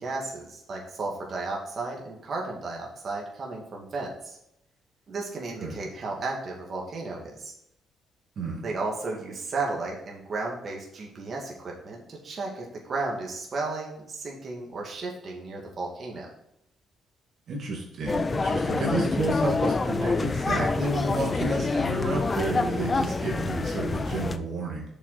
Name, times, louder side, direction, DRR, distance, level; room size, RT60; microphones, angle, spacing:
voice 1, 0.0-4.4 5.1-7.5 8.6-16.3, right 3 dB, 50° right, -2 dB, 2.3 m, -34 dB
voice 2, 17.5-24.9, right 2 dB, 65° right, -2 dB, 2.2 m, -30 dB
sound 1, 18.1-24.4, left 3 dB, 30° left, 0.6 m, -27 dB
6.9 x 6.4 x 4.2 m, 0.79 s
cardioid pair, 90°, 0 cm